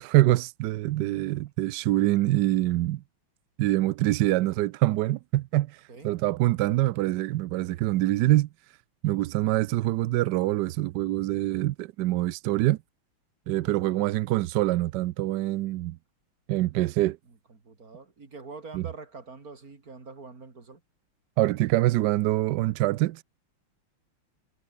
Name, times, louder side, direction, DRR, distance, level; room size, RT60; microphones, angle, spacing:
voice 1, 0.0-3.0 3.6-8.5 9.0-12.8 13.5-16.0 16.5-17.2 18.7-18.9 21.4-23.2, right 16 dB, 80° right, 0.9 m, -25 dB
voice 2, 13.6-14.0 17.3-20.8, right 4 dB, 40° right, 3.6 m, -45 dB
omnidirectional pair, 2.4 m